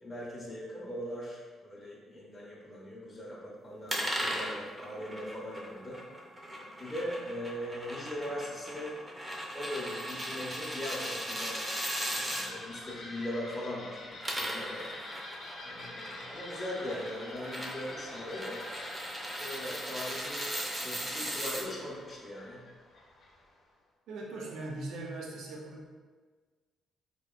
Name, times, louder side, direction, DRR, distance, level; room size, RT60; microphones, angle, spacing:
voice 1, 0.0-6.0 6.8-9.0 9.5-11.6 12.1-14.9 15.6-18.6 19.3-22.6, left 1 dB, 15° left, -7 dB, 0.8 m, -40 dB
sound 1, 3.9-12.5 14.0-21.6, equal, 20° right, 0.7 m, -38 dB
sound 2, 11.2-23.6, left 2 dB, 65° left, 0.7 m, -46 dB
voice 2, 24.1-25.9, right 2 dB, 75° right, -2 dB, 0.6 m, -40 dB
4.2 x 2.9 x 2.4 m, 1.4 s
cardioid pair, 90°, 0 cm